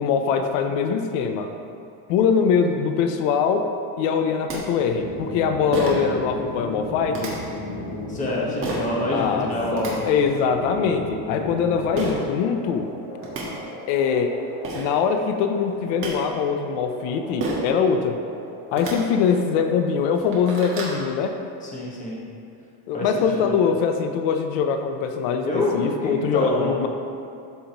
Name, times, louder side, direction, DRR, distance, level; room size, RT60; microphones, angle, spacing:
voice 1, 0.0-1.5 2.1-3.7 4.0-7.4 9.1-12.9 13.9-14.4 14.7-18.2 18.7-21.4 22.9-26.9, left 6 dB, 85° left, 6 dB, 0.7 m, -23 dB
sound 1, 4.2-4.3 4.5-4.6 5.7-6.1 7.1-7.3 8.6-8.9 9.5-9.9 12.0-12.1 12.9-13.0 13.2-13.4 14.3-14.4 14.6-14.9 15.7-16.1 17.4-17.7 18.7-18.9 19.6-19.7 20.1-21.0, right 3 dB, 30° right, 1.5 m, -29 dB
sound 2, 4.9-19.7, left 2 dB, 45° left, 1.9 m, -36 dB
voice 2, 8.1-10.0 21.6-22.2 22.9-23.5 25.4-26.7, left 1 dB, 20° left, -5 dB, 1.3 m, -26 dB
12.5 x 5.1 x 3.0 m, 2.6 s
cardioid pair, 175°, 43 cm